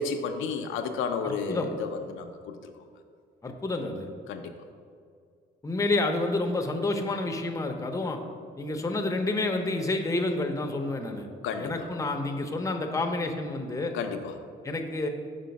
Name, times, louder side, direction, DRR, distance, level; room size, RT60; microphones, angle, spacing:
voice 1, 0.0-2.7 4.3-4.5 11.4-11.9 13.9-14.4, left 5 dB, 85° left, 5 dB, 0.5 m, -32 dB
voice 2, 1.2-1.7 3.4-4.1 5.6-8.2 8.6-11.3 11.6-14.0 14.6-15.1, left 2 dB, 15° left, 3 dB, 0.6 m, -29 dB
5.7 x 3.7 x 5.2 m, 2.2 s
cardioid pair, 90°, 20 cm